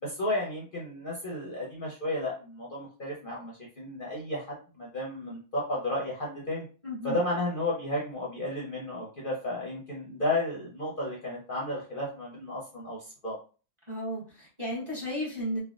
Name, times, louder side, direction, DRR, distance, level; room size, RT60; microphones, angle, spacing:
voice 1, 0.0-6.6 7.0-13.4, left 1 dB, 50° left, -4 dB, 0.7 m, -33 dB
voice 2, 6.8-7.2 13.9-15.6, equal, 25° right, -6 dB, 1.0 m, -34 dB
3.4 x 2.1 x 2.4 m, 0.37 s
omnidirectional pair, 1.5 m